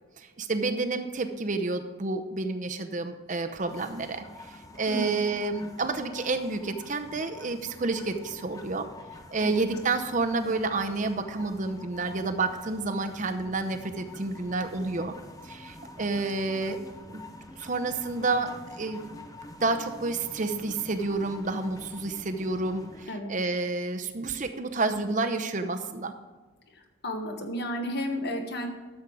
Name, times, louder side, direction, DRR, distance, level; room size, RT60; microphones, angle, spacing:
voice 1, 0.2-8.9 9.3-15.1 15.4-16.8 17.1-17.2 17.5-19.0 19.6-26.1, right 3 dB, 35° right, 7 dB, 0.7 m, -30 dB
sound 1, 3.5-23.1, left 2 dB, 15° left, 0.6 m, -47 dB
voice 2, 4.9-5.2 9.4-9.6 23.1-23.4 27.0-28.7, equal, 50° left, 4 dB, 1.3 m, -32 dB
12.5 x 7.3 x 4.7 m, 1.3 s
head